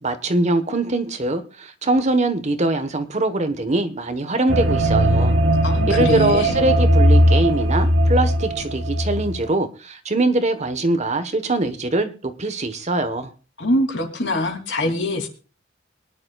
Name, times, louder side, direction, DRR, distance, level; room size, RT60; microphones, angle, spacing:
voice 1, 0.0-5.3 5.9-13.3, right 2 dB, 35° right, 1.2 m, -22 dB
sound 1, 4.5-9.5, right 1 dB, 80° right, 2.4 m, -18 dB
voice 2, 5.6-6.6 13.6-15.3, left 1 dB, 65° left, 3.0 m, -23 dB
23.5 x 11.0 x 2.4 m
head